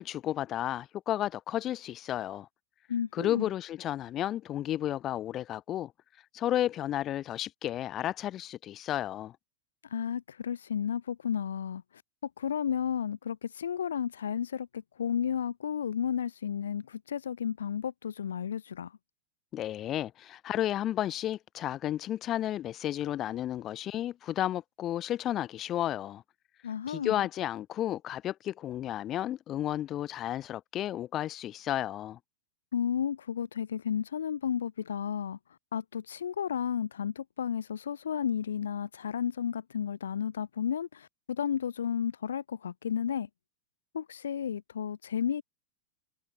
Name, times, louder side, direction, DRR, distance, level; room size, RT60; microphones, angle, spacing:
voice 1, 0.0-2.5 3.1-5.9 6.3-9.3 19.5-26.2 26.9-32.2, left 12 dB, 30° left, 2.2 m, -32 dB
voice 2, 2.9-3.5 9.8-11.8 12.4-18.9 26.6-27.3 32.7-35.4 35.7-43.3 43.9-45.4, left 8 dB, 65° left, 1.8 m, -32 dB
figure-of-eight pair, 90°, 0 cm